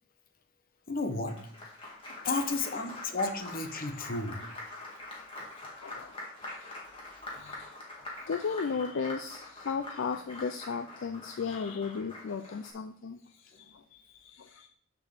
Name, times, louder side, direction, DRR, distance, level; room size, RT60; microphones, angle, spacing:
voice 1, 0.9-1.3 2.2-4.4, left 3 dB, 45° left, 7 dB, 0.9 m, -32 dB
Applause, 1.0-12.7, left 2 dB, 25° left, 1.9 m, -45 dB
voice 2, 5.6-6.2 6.4-6.7 7.3-7.7 8.3-14.7, left 5 dB, 60° left, 7 dB, 0.4 m, -36 dB
6.6 x 4.6 x 6.5 m, 0.63 s
head